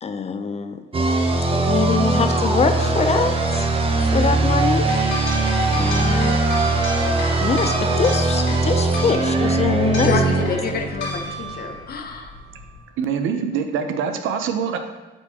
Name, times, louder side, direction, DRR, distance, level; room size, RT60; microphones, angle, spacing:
voice 1, 0.0-0.8 1.5-3.7 4.0-4.9 5.7-6.4 7.4-10.2, left 5 dB, 35° left, 9 dB, 0.5 m, -23 dB
sound 1, 0.9-11.6, right 2 dB, 30° right, 0.8 m, -21 dB
sound 2, 4.9-12.8, equal, 65° left, 2.0 m, -32 dB
voice 2, 10.0-12.3, left 4 dB, 50° left, 4 dB, 0.9 m, -27 dB
voice 3, 13.0-14.8, right 7 dB, 85° right, 7 dB, 0.6 m, -24 dB
8.7 x 4.4 x 2.8 m, 1.2 s
cardioid pair, 90°, 20 cm